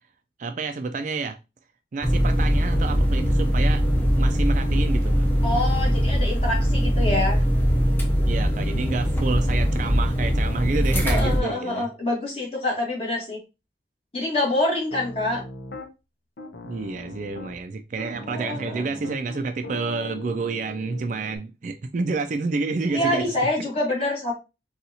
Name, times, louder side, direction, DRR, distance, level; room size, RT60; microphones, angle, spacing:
voice 1, 0.4-1.4 1.9-3.8 4.2-5.3 8.2-11.9 16.6-23.2, right 4 dB, 45° right, 0.3 m, -29 dB
sound 1, 2.0-11.4, equal, 10° left, 0.6 m, -21 dB
voice 2, 5.4-7.4 11.0-13.4 14.1-15.4 18.3-18.8 22.9-24.3, left 2 dB, 35° left, 1.4 m, -26 dB
Piano, 14.9-15.9 16.4-17.6 18.0-21.4, left 2 dB, 85° left, 0.7 m, -39 dB
4.1 x 2.4 x 2.7 m
head